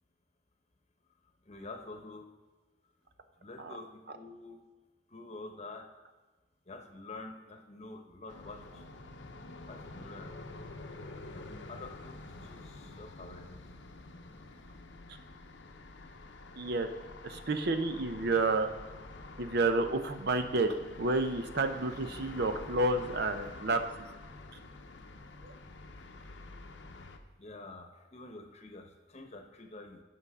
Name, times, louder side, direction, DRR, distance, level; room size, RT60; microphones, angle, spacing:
voice 1, 1.4-2.3 3.4-4.6 5.1-5.9 6.6-9.0 9.7-10.3 11.3-13.5 14.5-14.6 25.9-26.1 27.4-30.0, left 2 dB, 35° left, 5 dB, 1.0 m, -48 dB
sound 1, 8.3-27.2, left 2 dB, 75° left, 0.8 m, -48 dB
voice 2, 16.6-16.9 17.2-18.7 19.4-23.8 25.4-25.5, right 2 dB, 60° right, 8 dB, 0.7 m, -30 dB
15.5 x 5.6 x 3.6 m, 1.3 s
head